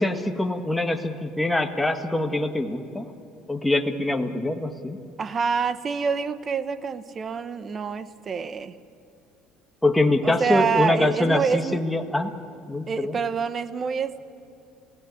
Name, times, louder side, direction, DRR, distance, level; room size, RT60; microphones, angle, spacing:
voice 1, 0.0-3.1 3.5-5.0 9.8-12.3 12.7-13.2, left 2 dB, 5° left, 5 dB, 1.6 m, -24 dB
voice 2, 5.2-8.8 10.2-11.8 12.9-14.2, right 5 dB, 30° right, 13 dB, 1.1 m, -26 dB
28.5 x 17.0 x 9.7 m, 2.6 s
cardioid pair, 120°, 0 cm